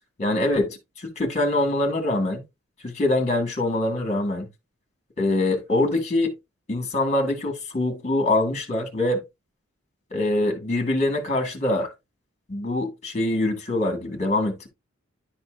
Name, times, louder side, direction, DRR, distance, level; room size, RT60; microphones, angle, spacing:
voice 1, 0.2-2.4 2.8-4.5 5.2-6.3 6.7-9.2 10.1-11.9 12.5-14.7, left 2 dB, 35° left, 1.8 m, -24 dB
11.0 x 4.3 x 2.5 m
head